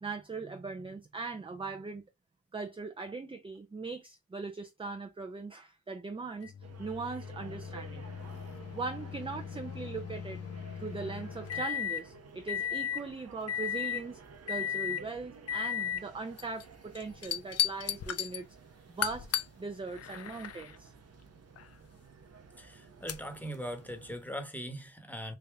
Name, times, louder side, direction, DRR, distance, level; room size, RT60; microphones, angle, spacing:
voice 1, 0.0-2.0 2.5-6.5 6.8-8.1 8.7-10.4 10.8-14.2 14.5-18.5 18.9-19.3 19.6-20.9, right 4 dB, 20° right, 0.4 m, -40 dB
sound 1, 6.4-12.1 12.5-13.0 13.5-14.0 14.5-15.0 15.5-16.0 16.4-16.6 17.0-18.4 19.0-19.5 19.9-20.8 21.6-21.7 23.1-23.2, left 9 dB, 55° left, 0.5 m, -36 dB
sound 2, 6.6-24.2, right 5 dB, 60° right, 0.7 m, -53 dB
voice 2, 22.6-25.4, equal, 5° left, 1.1 m, -40 dB
3.3 x 2.7 x 3.3 m
cardioid pair, 60°, 29 cm